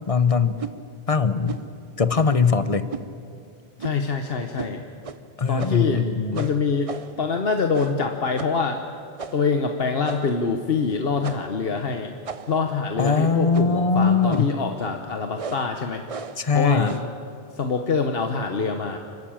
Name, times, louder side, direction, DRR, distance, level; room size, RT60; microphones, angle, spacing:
voice 1, 0.1-0.6 1.1-1.6 2.0-2.9 5.4-6.5 13.0-14.5 16.4-16.9, left 5 dB, 35° left, 12 dB, 0.9 m, -21 dB
sound 1, 0.6-0.8 1.5-1.7 2.1-2.4 2.9-3.1 3.8-4.1 4.6-4.7 5.0-5.2 5.6-5.9 6.3-7.2 7.7-8.1 8.4-8.6 9.2-9.5 10.0-10.4 11.2-11.6 12.2-12.7 13.5-13.8 14.3-14.6 15.4-15.7 16.1-16.4 16.8-17.2, right 5 dB, 40° right, 0.7 m, -35 dB
voice 2, 3.8-4.9 5.5-6.0 6.3-8.8 9.3-12.2 12.5-16.0 16.5-16.9 17.5-19.0, left 5 dB, 70° left, 4 dB, 1.3 m, -25 dB
28.0 x 13.5 x 8.8 m, 2.5 s
omnidirectional pair, 1.0 m